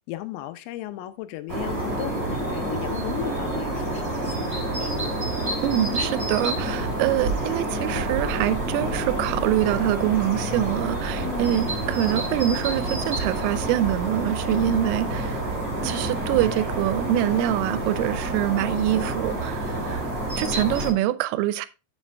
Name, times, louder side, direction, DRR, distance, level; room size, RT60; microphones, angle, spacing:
voice 1, 0.1-5.2 11.2-11.6 14.5-14.7, left 14 dB, 90° left, 3.4 m, -36 dB
sound 1, 1.5-20.9, right 2 dB, 20° right, 2.1 m, -28 dB
voice 2, 5.6-15.4 15.8-20.0 20.4-21.7, right 13 dB, 85° right, 3.1 m, -25 dB
7.7 x 7.3 x 3.3 m
omnidirectional pair, 5.8 m